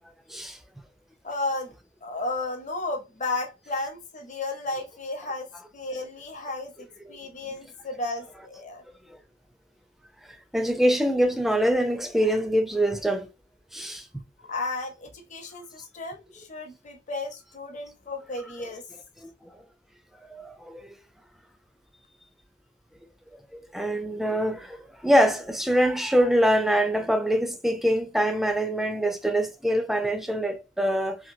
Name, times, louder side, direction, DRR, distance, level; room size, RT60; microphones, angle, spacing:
voice 1, 1.2-1.7 2.0-8.8 14.5-18.9, left 2 dB, 45° left, 0.7 m, -33 dB
voice 2, 10.5-13.3 13.7-14.0 19.2-19.3 20.3-20.9 23.7-24.8 25.0-31.2, equal, ahead, 0.3 m, -24 dB
2.8 x 2.6 x 2.6 m
head